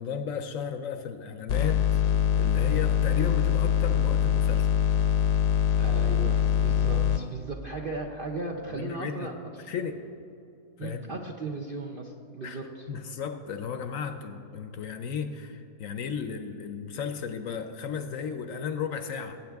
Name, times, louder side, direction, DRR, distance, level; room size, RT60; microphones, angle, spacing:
voice 1, 0.0-2.0 2.4-4.7 8.7-9.3 9.7-10.0 10.8-11.1 12.4-12.6 12.9-19.4, left 6 dB, 65° left, 8 dB, 0.9 m, -34 dB
sound 1, 1.5-7.2, left 9 dB, 85° left, 1.3 m, -23 dB
voice 2, 5.8-9.7 10.8-12.9, right 2 dB, 55° right, 1 dB, 0.6 m, -36 dB
18.5 x 8.5 x 3.5 m, 2.8 s
omnidirectional pair, 1.7 m